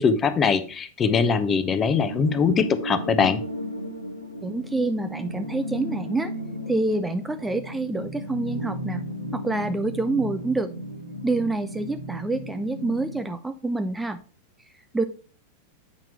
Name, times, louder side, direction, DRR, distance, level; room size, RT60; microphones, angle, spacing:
voice 1, 0.0-3.4, left 5 dB, 25° left, 12 dB, 0.9 m, -22 dB
sound 1, 1.3-13.3, equal, 90° left, 1.5 m, -35 dB
voice 2, 4.4-6.3 6.7-9.0 9.3-10.7 11.2-14.2 14.9-15.0, right 2 dB, 10° right, 9 dB, 0.5 m, -27 dB
8.8 x 5.9 x 3.1 m, 0.39 s
figure-of-eight pair, 90°, 0 cm